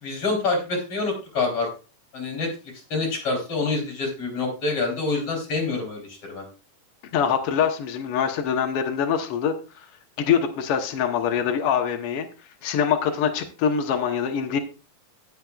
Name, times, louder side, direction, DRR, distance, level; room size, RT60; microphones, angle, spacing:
voice 1, 0.0-1.7 2.1-2.5 2.9-6.4, left 3 dB, 35° left, 1 dB, 4.5 m, -26 dB
voice 2, 7.1-9.5 10.2-12.3 12.6-14.6, left 7 dB, 80° left, 4 dB, 1.3 m, -24 dB
18.5 x 7.3 x 2.4 m, 0.33 s
omnidirectional pair, 4.3 m